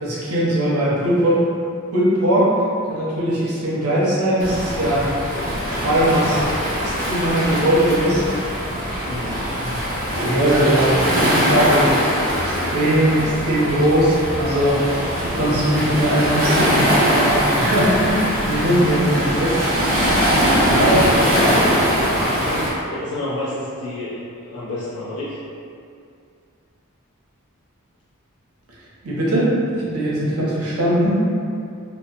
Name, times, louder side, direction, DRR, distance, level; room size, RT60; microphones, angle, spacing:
voice 1, 0.0-1.4 1.9-2.5 2.9-5.2 5.6-6.4 6.8-8.2 8.7-8.8 9.6-9.8 10.2-12.0 12.4-19.6 20.7-21.0 29.0-31.2, right 1 dB, 85° right, -7 dB, 0.7 m, -20 dB
Waves surf, 4.4-22.7, equal, 45° right, 0.6 m, -21 dB
voice 2, 9.1-9.4 20.7-22.1 22.4-25.4, left 1 dB, 70° left, -10 dB, 0.5 m, -29 dB
2.8 x 2.1 x 2.4 m, 2.5 s
head